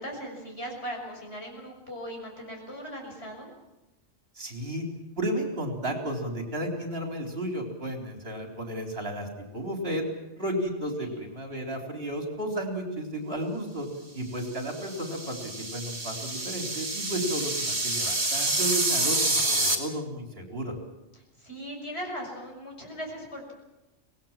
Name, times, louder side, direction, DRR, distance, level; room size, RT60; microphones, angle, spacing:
voice 1, 0.0-3.5 11.0-11.2 21.4-23.5, equal, 60° left, 0 dB, 6.7 m, -38 dB
voice 2, 4.4-4.8 5.2-9.3 9.5-10.0 10.4-13.9 14.1-20.7, right 1 dB, 55° right, 2 dB, 4.1 m, -33 dB
sound 1, 14.6-19.8, right 2 dB, 40° right, 3.2 m, -28 dB
24.5 x 19.0 x 7.4 m, 1.0 s
omnidirectional pair, 1.2 m